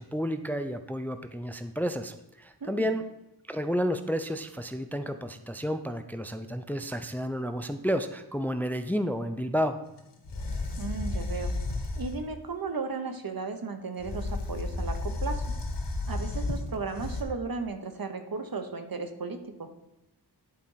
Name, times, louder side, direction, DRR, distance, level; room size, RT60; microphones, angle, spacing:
voice 1, 0.0-3.0 3.5-9.8, equal, 5° left, 9 dB, 0.5 m, -31 dB
sound 1, 10.0-10.1 10.3-12.2 14.0-17.2, left 2 dB, 85° left, 1.3 m, -32 dB
voice 2, 10.8-11.5 12.0-15.5 16.1-19.7, right 4 dB, 60° right, 7 dB, 1.1 m, -35 dB
10.5 x 4.3 x 5.7 m, 0.91 s
wide cardioid pair, 70°, 41 cm